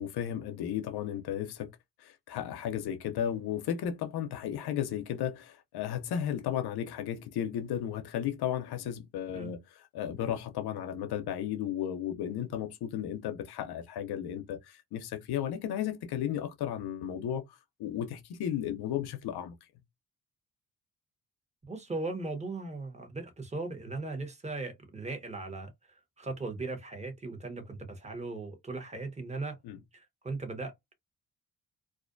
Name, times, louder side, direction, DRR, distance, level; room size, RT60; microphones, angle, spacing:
voice 1, 0.0-1.7 2.0-9.6 9.9-14.6 14.9-17.4 17.8-19.5 29.6-29.8, left 10 dB, 80° left, 0.6 m, -34 dB
voice 2, 21.6-29.6 29.9-30.9, right 3 dB, 20° right, 0.9 m, -38 dB
2.4 x 2.1 x 2.5 m
cardioid pair, 70°, 38 cm